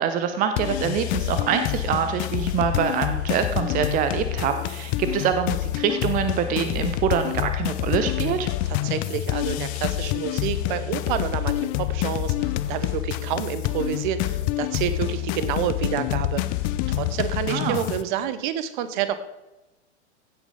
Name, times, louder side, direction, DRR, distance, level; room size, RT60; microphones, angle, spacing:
voice 1, 0.0-8.5 17.5-17.8, right 8 dB, 25° right, 8 dB, 0.7 m, -25 dB
sound 1, 0.6-18.0, left 14 dB, 25° left, 0.4 m, -27 dB
voice 2, 8.8-16.6 16.9-19.2, right 10 dB, 45° right, 12 dB, 1.0 m, -29 dB
16.0 x 8.2 x 3.8 m, 1.0 s
figure-of-eight pair, 95°, 35 cm